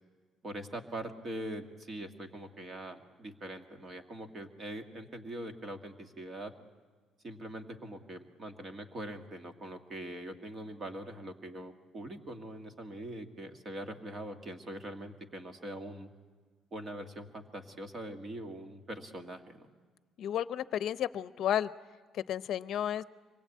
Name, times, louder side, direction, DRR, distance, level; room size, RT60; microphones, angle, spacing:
voice 1, 0.4-6.5 7.2-16.1 16.7-19.7, right 1 dB, 30° right, 5 dB, 1.9 m, -43 dB
voice 2, 20.2-21.7 22.1-23.0, left 10 dB, 60° left, 14 dB, 0.7 m, -32 dB
25.5 x 21.5 x 8.5 m, 1.5 s
cardioid pair, 160°, 0 cm